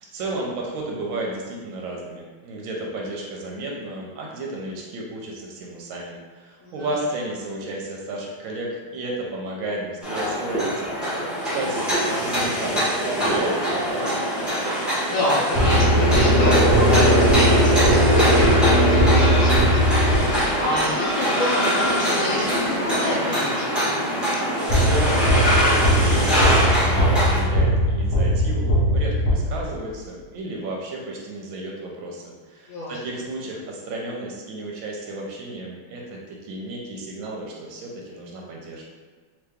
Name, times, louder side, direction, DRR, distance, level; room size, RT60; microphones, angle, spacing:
voice 1, 0.1-11.2 11.5-14.3 24.4-38.8, right 2 dB, 75° right, -2 dB, 1.3 m, -33 dB
sound 1, 10.0-27.4, right 1 dB, ahead, 0.5 m, -22 dB
voice 2, 14.7-23.8 32.7-32.9, left 1 dB, 75° left, -7 dB, 1.3 m, -28 dB
sound 2, 15.6-20.7 24.7-29.9, equal, 40° left, 0.7 m, -20 dB
3.1 x 2.9 x 3.4 m, 1.5 s
omnidirectional pair, 2.4 m